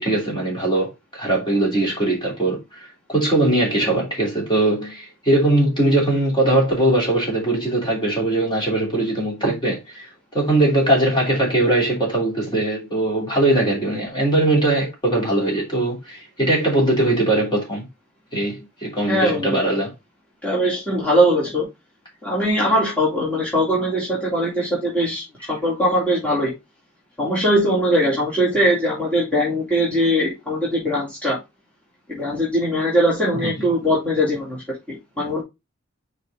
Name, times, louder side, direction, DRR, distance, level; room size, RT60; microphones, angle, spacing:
voice 1, 0.0-10.1 10.3-17.9 18.3-19.9 33.3-33.5, right 1 dB, 20° left, 3.1 m, -20 dB
voice 2, 19.1-19.6 20.4-21.7 22.2-26.5 27.2-31.4 32.1-34.6 34.9-35.4, equal, 5° left, 2.5 m, -21 dB
6.5 x 4.9 x 3.5 m
head